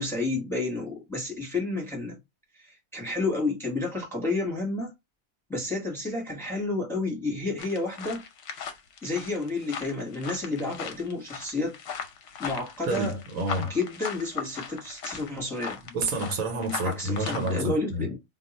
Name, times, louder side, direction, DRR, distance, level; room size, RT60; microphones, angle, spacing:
voice 1, 0.0-2.2 2.6-4.9 5.5-8.2 9.0-11.8 12.4-13.2 13.7-15.8 16.8-18.2, left 2 dB, ahead, 1.0 m, -30 dB
sound 1, 7.6-17.6, left 7 dB, 65° left, 0.9 m, -38 dB
voice 2, 12.9-13.7 15.8-18.1, right 1 dB, 80° right, 1.2 m, -29 dB
2.4 x 2.3 x 3.9 m
omnidirectional pair, 1.5 m